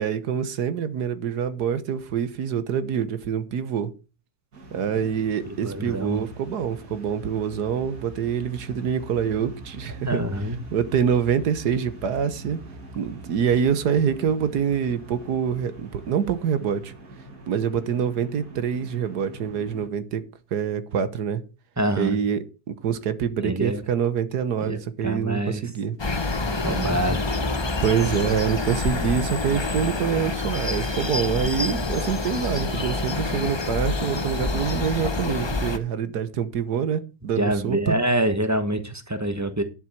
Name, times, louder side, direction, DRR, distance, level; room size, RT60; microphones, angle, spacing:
voice 1, 0.0-3.9 4.7-10.2 10.7-12.6 12.9-16.9 17.5-20.2 20.5-21.4 22.0-26.0 27.8-38.0, right 7 dB, 80° right, 1.6 m, -25 dB
sound 1, 4.5-19.9, right 1 dB, 60° right, 2.6 m, -43 dB
voice 2, 5.5-6.2 10.1-10.6 21.8-22.2 23.4-23.8 24.6-25.6 26.6-27.3 37.4-39.6, right 1 dB, 10° right, 1.1 m, -26 dB
sound 2, 26.0-35.8, left 3 dB, 25° left, 0.6 m, -27 dB
10.0 x 7.6 x 5.8 m
omnidirectional pair, 1.7 m